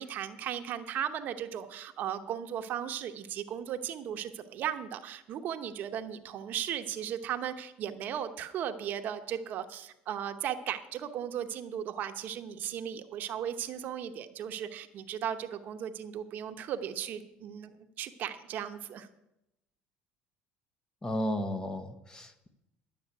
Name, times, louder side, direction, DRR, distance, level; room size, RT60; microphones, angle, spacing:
voice 1, 0.0-17.7 18.0-19.1, right 9 dB, 55° right, 8 dB, 1.0 m, -36 dB
voice 2, 21.0-22.5, left 1 dB, 20° left, 9 dB, 1.2 m, -34 dB
11.0 x 7.0 x 8.9 m, 0.86 s
supercardioid pair, 110°, 4 cm